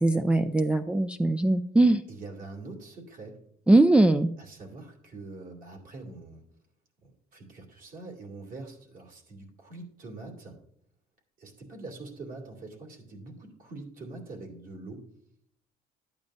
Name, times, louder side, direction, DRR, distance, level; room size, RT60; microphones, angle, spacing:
voice 1, 0.0-2.0 3.7-4.3, right 2 dB, 5° right, 5 dB, 0.3 m, -21 dB
voice 2, 2.1-3.4 4.4-6.4 7.0-10.6 11.4-15.0, right 3 dB, 55° right, 0 dB, 2.6 m, -44 dB
11.5 x 8.7 x 2.6 m, 0.67 s
cardioid pair, 110°, 17 cm